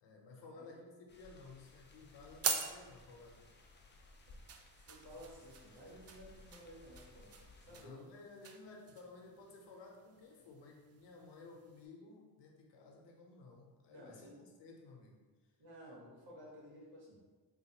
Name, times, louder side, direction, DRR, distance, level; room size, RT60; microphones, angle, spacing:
voice 1, 0.0-3.5 7.7-14.3 14.6-15.2, left 3 dB, 85° left, 1 dB, 0.7 m, -55 dB
sound 1, 1.1-7.8, left 2 dB, 25° left, 0.5 m, -60 dB
sound 2, 1.6-11.9, right 6 dB, 40° right, 0.4 m, -46 dB
voice 2, 4.9-8.0 13.9-14.3 15.6-17.2, equal, 70° right, -4 dB, 1.4 m, -55 dB
3.9 x 2.4 x 2.8 m, 1.4 s
cardioid pair, 75°, 41 cm